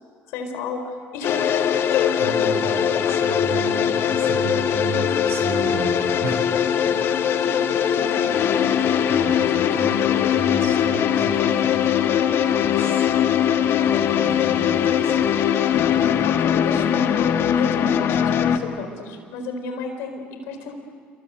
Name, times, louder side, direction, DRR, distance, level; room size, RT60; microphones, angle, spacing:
voice 1, 0.3-1.4 1.7-2.5 3.3-3.6 7.5-8.6 9.1-9.8 16.0-20.7, left 5 dB, 80° left, 6 dB, 4.4 m, -32 dB
sound 1, 1.2-18.6, left 9 dB, 60° left, 1.6 m, -21 dB
voice 2, 2.2-6.4 6.8-7.1 9.1-11.9 12.6-13.1 13.8-15.3, right 4 dB, 65° right, 4 dB, 6.8 m, -33 dB
27.5 x 24.5 x 8.0 m, 2.2 s
supercardioid pair, 75°, 5 cm